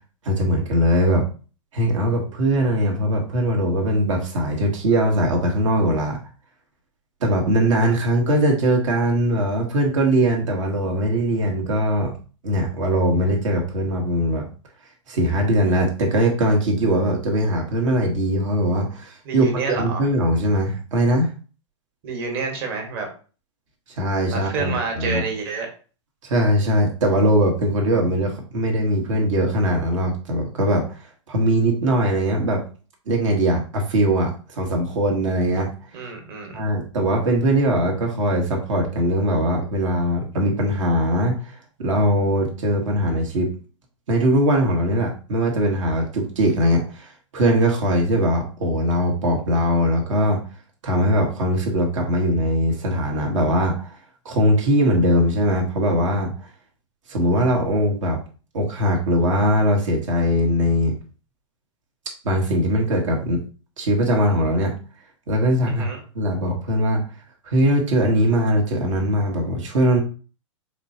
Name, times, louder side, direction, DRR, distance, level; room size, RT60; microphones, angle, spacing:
voice 1, 0.2-1.3 1.7-6.2 7.2-12.2 12.4-14.5 15.1-21.3 24.0-25.2 26.2-30.8 31.3-32.6 33.1-35.7 36.5-43.5 44.1-50.4 50.8-53.9 54.2-56.3 57.1-58.2 58.5-60.9 62.2-63.4 63.8-64.7 65.3-65.9 66.1-67.0 67.4-70.0, equal, 75° right, 1 dB, 1.3 m, -21 dB
voice 2, 19.2-20.0 22.0-23.1 24.3-25.7 35.9-36.6 65.6-66.0, right 4 dB, 50° right, 3 dB, 1.5 m, -28 dB
4.2 x 3.3 x 2.8 m, 0.37 s
hypercardioid pair, 120°, 16 cm